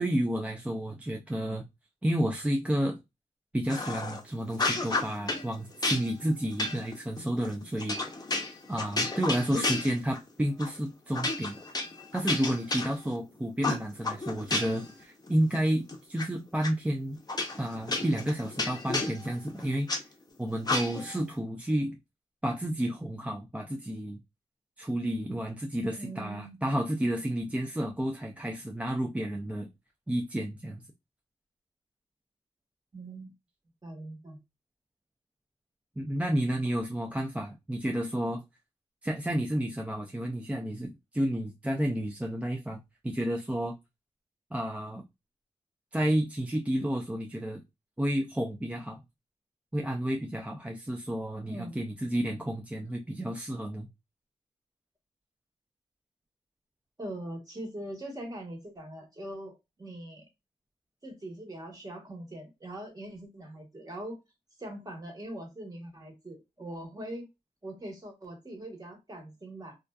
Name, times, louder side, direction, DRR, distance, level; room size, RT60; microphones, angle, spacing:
voice 1, 0.0-1.7 2.0-3.0 3.5-8.0 8.7-11.6 12.1-17.2 17.6-19.9 20.4-22.0 22.4-24.2 24.8-29.7 30.1-30.8 36.0-38.4 39.0-42.8 43.0-43.7 44.5-45.0 45.9-47.6 48.0-49.0 49.7-53.9, right 1 dB, 10° right, 0.4 m, -31 dB
sound 1, 3.7-4.2 4.5-5.5 5.8-10.3 10.6-10.8 11.1-13.2 13.6-14.9 15.3-16.3 16.6-16.7 17.3-20.0 20.6-21.2, left 2 dB, 30° left, 0.6 m, -32 dB
voice 2, 26.0-26.6 32.9-33.3 33.8-34.4 51.5-51.8 57.0-60.3 61.0-64.2 64.6-67.3 67.6-69.8, right 1 dB, 30° right, 1.2 m, -42 dB
2.5 x 2.3 x 2.2 m
cardioid pair, 70°, 12 cm